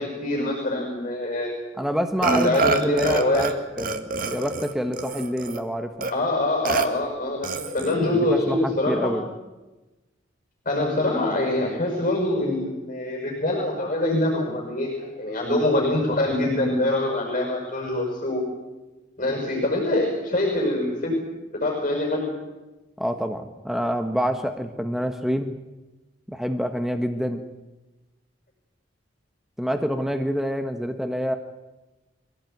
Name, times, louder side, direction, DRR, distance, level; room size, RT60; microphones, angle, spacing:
voice 1, 0.0-1.5 2.2-3.5 6.1-9.1 10.6-18.5 19.2-21.2 21.5-22.3, left 1 dB, 40° left, 0 dB, 6.5 m, -24 dB
voice 2, 1.8-6.1 7.8-9.3 23.0-25.6 26.3-27.4 29.6-31.3, equal, ahead, 6 dB, 1.2 m, -27 dB
Burping eructation, 2.2-3.5 3.8-5.6 6.0-6.1 6.7-6.9 7.4-8.0, right 4 dB, 45° right, 1.8 m, -26 dB
24.0 x 17.0 x 9.4 m, 1.1 s
head